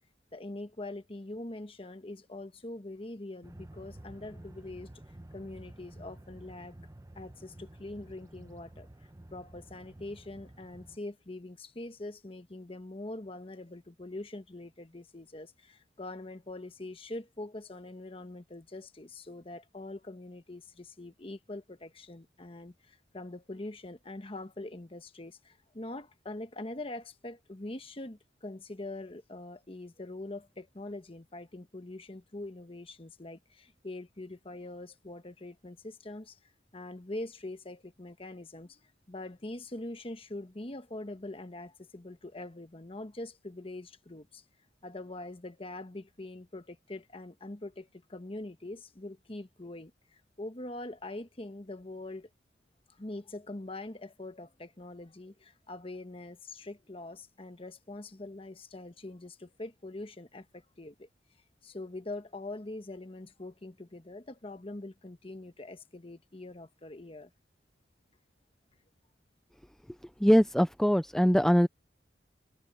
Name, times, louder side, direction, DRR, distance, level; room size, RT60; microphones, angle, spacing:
voice 1, 0.3-4.9 5.3-6.8 7.1-8.9 9.3-38.8 39.1-44.4 44.8-52.3 52.9-61.1 61.6-67.3, left 2 dB, 30° left, 1.2 m, -43 dB
sound 1, 3.4-11.0, right 1 dB, 20° right, 0.8 m, -51 dB
voice 2, 70.2-71.7, equal, 5° left, 0.4 m, -22 dB
head